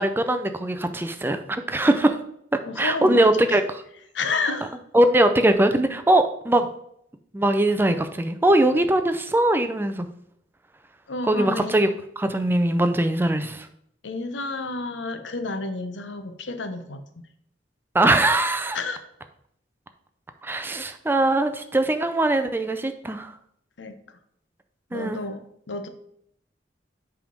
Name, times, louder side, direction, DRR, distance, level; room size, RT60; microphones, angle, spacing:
voice 1, 0.0-2.2 2.8-3.6 4.9-6.7 7.3-10.1 11.3-11.9 12.2-13.7 17.9-18.8 20.4-23.3 24.9-25.2, right 1 dB, 10° right, 8 dB, 0.4 m, -21 dB
voice 2, 2.7-3.6 4.1-4.8 11.1-11.8 14.0-17.3 18.7-19.0 23.8-24.0 24.9-25.9, left 3 dB, 85° left, 9 dB, 0.8 m, -30 dB
7.7 x 3.5 x 5.2 m, 0.72 s
head